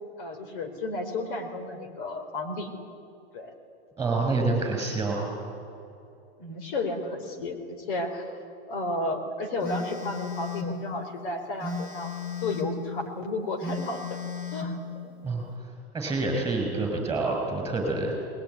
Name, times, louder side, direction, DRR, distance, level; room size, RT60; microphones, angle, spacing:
voice 1, 0.2-2.7 3.3-3.5 6.4-7.6 7.9-8.3 8.7-12.1 12.4-14.2 14.5-14.8 15.0-15.1, left 2 dB, 50° left, 6 dB, 4.0 m, -32 dB
voice 2, 4.0-5.4 15.2-15.5 15.9-18.1, right 3 dB, 10° right, 2 dB, 5.9 m, -27 dB
Telephone, 9.6-10.8 11.6-12.8 13.6-14.8, left 4 dB, 30° left, 4.1 m, -34 dB
21.0 x 19.5 x 9.5 m, 2.6 s
hypercardioid pair, 145°, 32 cm